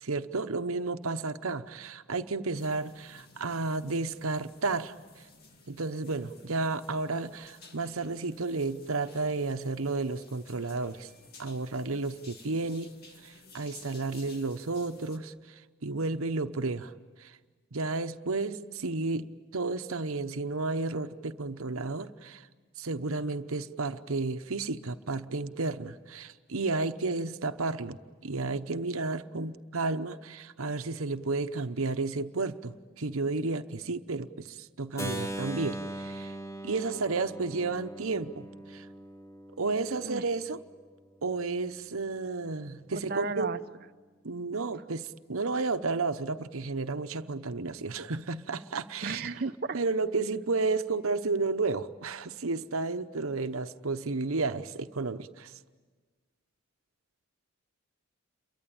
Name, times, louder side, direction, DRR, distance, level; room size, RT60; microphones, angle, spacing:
voice 1, 0.0-5.0 5.7-11.1 11.4-12.9 13.2-16.9 17.2-17.4 17.7-22.5 22.8-36.3 36.6-38.9 39.6-40.6 41.2-43.5 44.2-49.3 49.7-55.5, right 3 dB, 75° right, 10 dB, 0.9 m, -32 dB
sound 1, 2.5-15.2, left 3 dB, 45° left, 2.1 m, -55 dB
Keyboard (musical), 35.0-40.8, right 1 dB, 15° left, 1.0 m, -40 dB
voice 2, 42.9-43.6 49.0-49.8, right 4 dB, 45° right, 11 dB, 0.8 m, -34 dB
29.0 x 23.5 x 8.8 m, 1.4 s
head